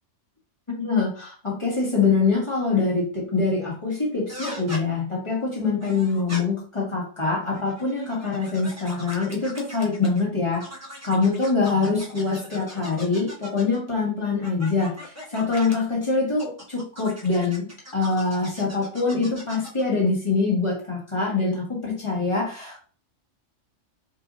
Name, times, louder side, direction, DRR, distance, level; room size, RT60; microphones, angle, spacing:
voice 1, 0.8-10.6 11.0-22.8, left 4 dB, 25° left, -4 dB, 1.6 m, -24 dB
sound 1, 4.3-4.8 5.8-6.4 7.4-10.2 10.5-13.8 14.4-15.8 16.4-19.8, equal, 15° right, 0.8 m, -40 dB
4.7 x 3.0 x 2.6 m, 0.39 s
omnidirectional pair, 1.3 m